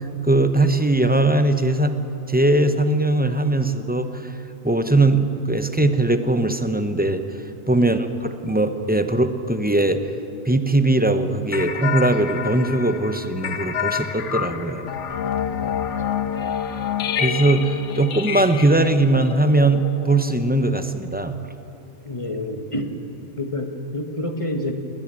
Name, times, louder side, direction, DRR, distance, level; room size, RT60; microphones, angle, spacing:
voice 1, 0.2-1.9 2.3-4.3 4.6-7.2 7.7-10.0 10.4-14.8 17.2-21.4, right 2 dB, 10° right, 8 dB, 0.7 m, -20 dB
sound 1, 11.5-20.4, left 8 dB, 65° left, 1.3 m, -28 dB
voice 2, 22.0-22.9 23.4-24.7, left 1 dB, 25° left, 5 dB, 1.4 m, -29 dB
20.5 x 18.0 x 7.6 m, 2.9 s
omnidirectional pair, 1.4 m